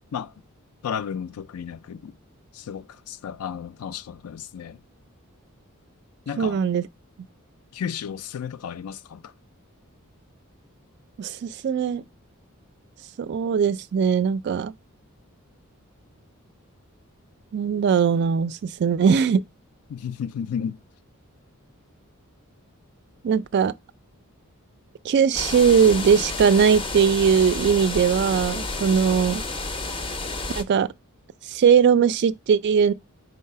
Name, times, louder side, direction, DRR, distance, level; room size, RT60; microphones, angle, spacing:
voice 1, 0.8-2.2 2.5-4.8 6.3-6.6 7.7-9.3 19.9-20.8, left 7 dB, 80° left, 0.4 m, -33 dB
voice 2, 6.4-6.9 11.2-12.0 13.2-14.7 17.5-19.4 23.2-23.7 25.0-29.4 30.6-30.9 31.5-32.9, right 7 dB, 50° right, 0.3 m, -20 dB
sound 1, 25.3-30.6, left 3 dB, 25° left, 0.5 m, -30 dB
4.7 x 4.0 x 5.4 m
head